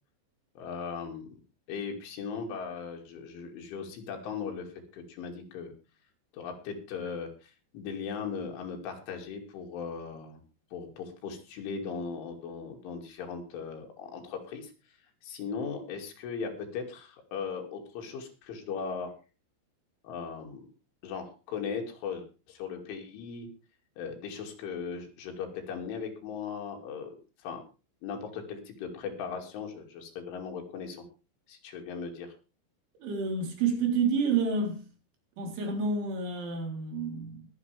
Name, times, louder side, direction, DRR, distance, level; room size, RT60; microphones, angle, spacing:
voice 1, 0.6-1.3 1.7-5.7 6.3-10.4 10.7-14.7 15.2-19.1 20.0-20.7 21.0-23.5 24.0-27.6 28.0-31.0 31.5-32.3, left 6 dB, 85° left, 4.9 m, -38 dB
voice 2, 33.0-34.8 35.4-37.5, right 4 dB, 80° right, 6.1 m, -29 dB
22.5 x 8.3 x 3.4 m
omnidirectional pair, 5.4 m